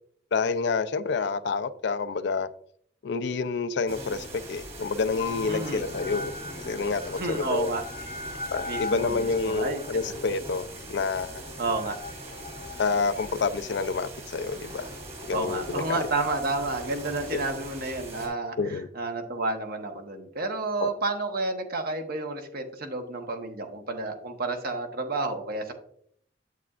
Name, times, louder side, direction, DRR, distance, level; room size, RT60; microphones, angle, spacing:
voice 1, 0.3-2.5 3.0-6.3 6.6-7.7 8.5-11.4 12.8-14.9 15.3-16.0 17.3-17.4 18.6-18.9 20.8-20.9, left 4 dB, 65° left, 0.4 m, -28 dB
sound 1, 3.9-18.3, right 1 dB, 35° right, 2.5 m, -41 dB
sound 2, 5.2-13.2, left 3 dB, 50° left, 0.8 m, -40 dB
voice 2, 5.5-5.8 7.1-7.8 8.7-9.8 11.6-12.0 15.3-25.7, right 2 dB, 55° right, 1.2 m, -31 dB
8.2 x 8.0 x 2.4 m
head